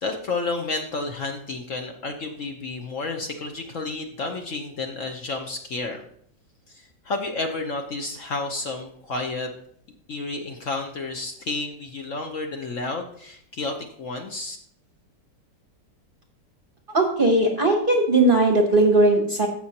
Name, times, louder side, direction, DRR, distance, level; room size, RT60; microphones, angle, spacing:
voice 1, 0.0-6.0 6.7-9.5 10.1-14.6, left 3 dB, 55° left, 3 dB, 1.0 m, -31 dB
voice 2, 16.9-19.5, right 2 dB, 40° right, 3 dB, 0.9 m, -18 dB
14.5 x 6.1 x 2.8 m, 0.66 s
omnidirectional pair, 1.9 m